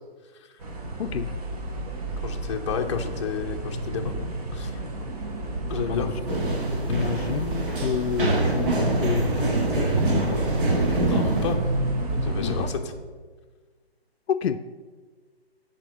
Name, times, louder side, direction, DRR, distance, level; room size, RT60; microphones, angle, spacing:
sound 1, 0.6-12.7, right 1 dB, 35° right, 1.1 m, -30 dB
voice 1, 2.2-4.1 4.5-4.7 5.7-6.2 11.0-11.6 12.1-12.9, left 6 dB, 30° left, 3 dB, 0.6 m, -31 dB
sound 2, 6.3-11.5, right 2 dB, 55° right, 1.8 m, -25 dB
voice 2, 6.9-10.4 12.4-12.7 14.3-14.6, left 8 dB, 70° left, 12 dB, 0.5 m, -29 dB
7.6 x 4.3 x 6.2 m, 1.4 s
hypercardioid pair, 150°, 32 cm